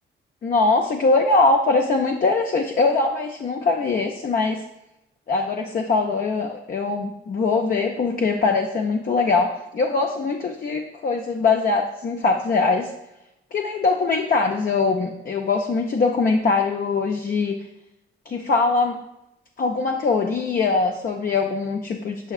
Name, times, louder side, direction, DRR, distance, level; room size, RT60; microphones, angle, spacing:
voice 1, 0.4-4.6 5.3-12.9 13.5-17.6 18.3-19.0 19.6-22.3, left 3 dB, 40° left, 3 dB, 0.5 m, -22 dB
6.9 x 5.6 x 2.4 m, 0.88 s
cardioid pair, 105°, 21 cm